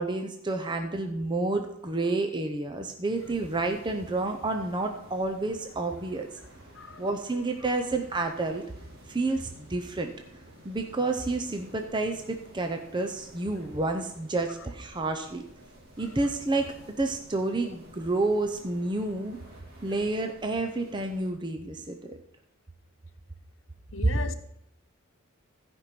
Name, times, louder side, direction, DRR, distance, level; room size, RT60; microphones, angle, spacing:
voice 1, 0.0-6.3 7.0-8.6 9.1-10.1 10.6-15.4 16.0-19.4 19.8-22.2, right 2 dB, 20° right, 0.7 m, -30 dB
sound 1, 3.1-21.3, right 1 dB, 50° right, 2.3 m, -52 dB
voice 2, 23.9-24.4, left 4 dB, 65° left, 0.9 m, -37 dB
14.5 x 5.3 x 5.9 m
head